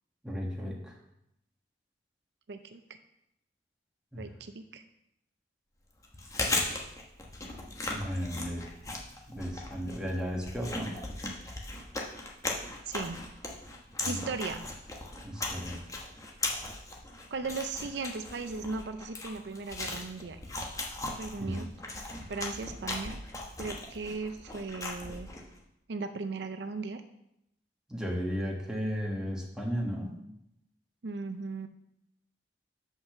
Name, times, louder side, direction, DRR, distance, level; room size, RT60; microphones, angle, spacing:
voice 1, 0.2-1.0 4.1-4.2 7.9-8.7 9.3-11.0 14.0-14.2 15.2-15.8 21.3-21.7 27.9-30.2, equal, 5° right, -2 dB, 1.5 m, -34 dB
voice 2, 2.5-2.8 4.2-4.8 12.9-13.2 14.1-14.7 17.3-20.4 21.2-21.7 22.3-23.2 23.6-25.3 25.9-27.0 31.0-31.7, right 4 dB, 70° right, 8 dB, 0.5 m, -37 dB
Chewing mastication, 6.0-25.5, left 2 dB, 20° left, 1.1 m, -38 dB
6.0 x 5.6 x 6.7 m, 0.81 s
head